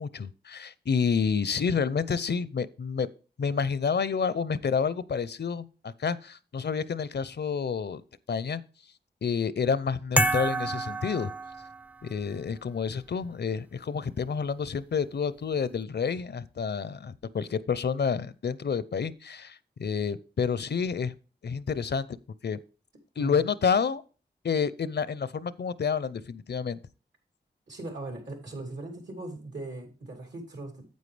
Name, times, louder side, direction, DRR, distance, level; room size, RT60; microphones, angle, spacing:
voice 1, 0.0-3.1 3.4-8.0 8.3-8.6 9.2-11.3 12.0-21.1 21.4-22.1 22.4-22.6 23.2-24.0 24.4-26.8, left 6 dB, 70° left, 17 dB, 0.6 m, -29 dB
sound 1, 10.2-12.1, right 1 dB, 10° right, 0.4 m, -28 dB
voice 2, 27.7-30.8, right 2 dB, 80° right, 3 dB, 3.1 m, -39 dB
9.4 x 8.2 x 3.3 m, 0.35 s
cardioid pair, 45°, 18 cm